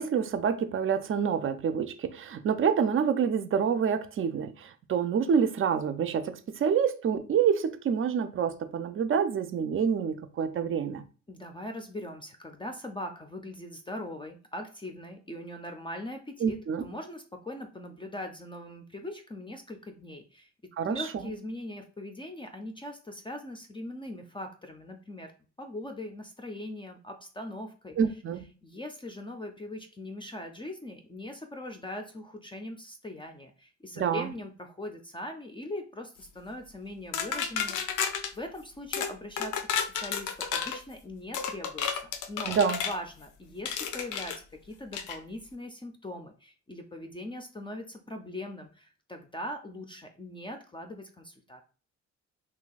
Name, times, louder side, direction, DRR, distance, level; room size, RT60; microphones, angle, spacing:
voice 1, 0.0-11.0 16.4-16.8 20.8-21.3 28.0-28.4 34.0-34.3 42.5-42.8, right 7 dB, 45° right, 0.5 m, -27 dB
voice 2, 11.3-20.5 20.8-25.3 25.6-28.0 28.6-38.0 38.3-42.6 42.8-51.6, left 1 dB, 15° left, 0.5 m, -41 dB
sound 1, 37.1-38.3 38.9-39.1 39.4-40.8 41.3-43.0 43.7-44.4 44.9-45.2, left 7 dB, 80° left, 0.5 m, -31 dB
2.7 x 2.3 x 3.9 m
cardioid pair, 90°, 30 cm